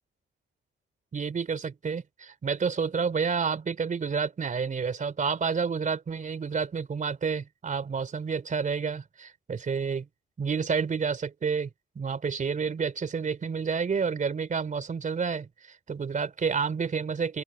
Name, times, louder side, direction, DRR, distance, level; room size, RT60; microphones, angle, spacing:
voice 1, 1.1-10.1 10.4-11.7 12.0-15.5 15.9-17.4, right 5 dB, 40° right, 3.9 m, -29 dB
open air
cardioid pair, 90°, 20 cm